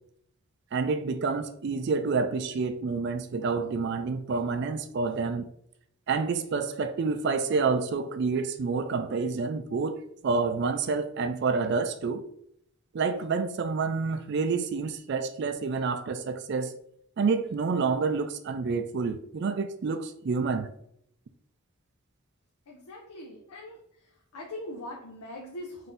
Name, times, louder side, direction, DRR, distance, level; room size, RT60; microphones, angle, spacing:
voice 1, 0.7-5.5 6.1-12.2 12.9-16.7 17.2-20.7, right 4 dB, 50° right, 0.3 m, -28 dB
voice 2, 22.7-23.8 24.3-25.9, left 1 dB, 90° left, 0.7 m, -41 dB
3.9 x 2.7 x 3.7 m
head